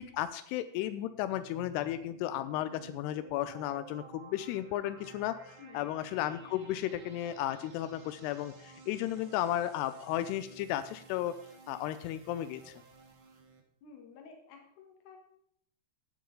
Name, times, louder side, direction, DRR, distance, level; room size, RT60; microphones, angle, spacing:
voice 1, 0.0-11.4 11.7-12.8, left 12 dB, 85° left, 12 dB, 2.6 m, -34 dB
sound 1, 1.1-13.6, right 3 dB, 75° right, 1.1 m, -54 dB
voice 2, 9.1-9.6 13.8-15.2, left 5 dB, 55° left, 3 dB, 2.8 m, -54 dB
16.5 x 7.4 x 3.9 m, 0.69 s
omnidirectional pair, 4.6 m